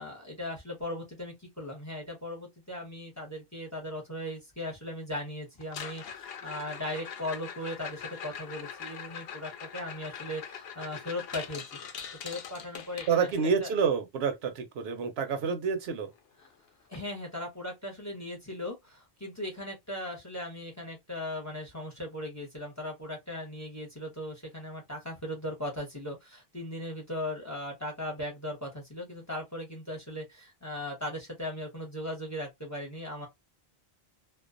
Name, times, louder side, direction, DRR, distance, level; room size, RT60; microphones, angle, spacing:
voice 1, 0.0-11.8 12.2-13.7 16.4-16.5 16.9-33.3, left 1 dB, 20° left, 0.8 m, -38 dB
sound 1, 5.6-13.6 15.8-15.9 16.2-16.5 16.9-17.0 17.6-17.7 19.6-19.7, left 7 dB, 75° left, 0.8 m, -42 dB
voice 2, 13.1-16.1, right 6 dB, 80° right, 0.9 m, -28 dB
2.3 x 2.2 x 2.5 m
omnidirectional pair, 1.0 m